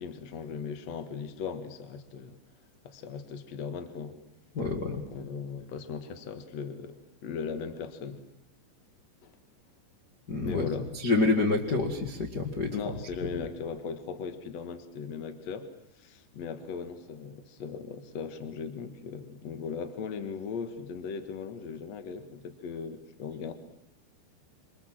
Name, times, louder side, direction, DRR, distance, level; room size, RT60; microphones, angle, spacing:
voice 1, 0.0-2.4 2.8-4.2 5.1-8.2 9.2-9.3 10.4-10.9 12.7-15.7 16.0-23.5, left 6 dB, 70° left, 8 dB, 1.6 m, -38 dB
voice 2, 4.5-5.0 10.3-10.7 10.9-12.7, left 3 dB, 85° left, 1 dB, 0.9 m, -27 dB
27.0 x 25.5 x 7.6 m, 0.80 s
omnidirectional pair, 5.8 m